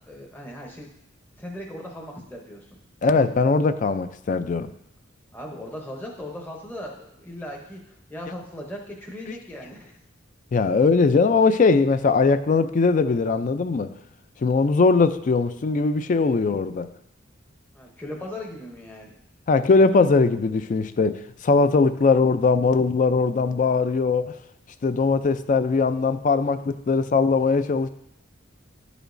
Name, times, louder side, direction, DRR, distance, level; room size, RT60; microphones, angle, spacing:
voice 1, 0.1-0.9 1.4-2.8 5.3-7.8 8.1-9.9 17.7-19.1, left 1 dB, 10° left, -1 dB, 0.7 m, -38 dB
voice 2, 3.0-4.7 10.5-13.9 14.4-16.9 19.5-24.4 24.8-27.9, left 4 dB, 40° left, 12 dB, 0.3 m, -20 dB
10.5 x 5.0 x 2.6 m, 0.79 s
head